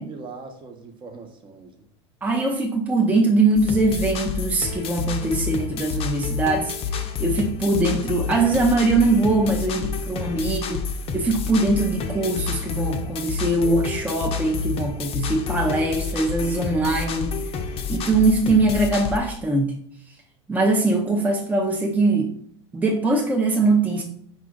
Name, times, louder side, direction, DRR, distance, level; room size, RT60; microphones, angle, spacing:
voice 1, 0.0-1.9 7.0-7.1, right 4 dB, 35° right, 4 dB, 0.9 m, -41 dB
voice 2, 2.2-10.8 11.1-17.4 17.9-19.7 20.5-22.3 22.7-24.0, right 2 dB, 10° right, 0 dB, 0.6 m, -22 dB
sound 1, 3.6-19.2, left 5 dB, 40° left, 0.6 m, -29 dB
4.9 x 2.4 x 3.8 m, 0.63 s
hypercardioid pair, 90°, 15 cm